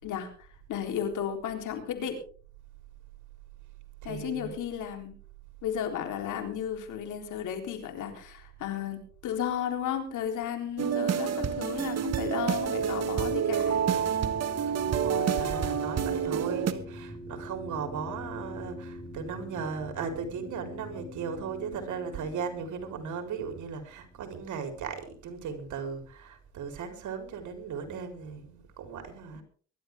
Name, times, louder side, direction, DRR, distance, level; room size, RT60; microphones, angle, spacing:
voice 1, 0.0-2.2 4.0-5.1 5.6-13.8 29.3-29.4, left 9 dB, 85° left, 3.8 m, -34 dB
voice 2, 4.0-4.5 14.8-29.4, right 6 dB, 75° right, 4.2 m, -37 dB
sound 1, 10.8-16.7, right 8 dB, 60° right, 1.5 m, -28 dB
sound 2, 11.0-24.5, left 1 dB, 15° left, 5.4 m, -45 dB
23.0 x 12.0 x 3.6 m
cardioid pair, 90°, 30 cm